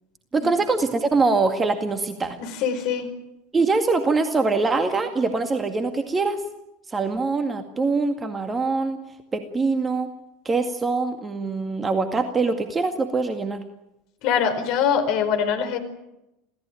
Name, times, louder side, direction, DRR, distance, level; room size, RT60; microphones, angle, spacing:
voice 1, 0.3-2.4 3.5-6.4 6.9-9.0 9.3-10.1 10.5-13.6, right 3 dB, 20° right, 7 dB, 2.1 m, -23 dB
voice 2, 2.4-3.1 14.2-15.8, left 7 dB, 50° left, 7 dB, 4.7 m, -23 dB
28.0 x 17.5 x 9.2 m, 0.91 s
figure-of-eight pair, 80°, 0 cm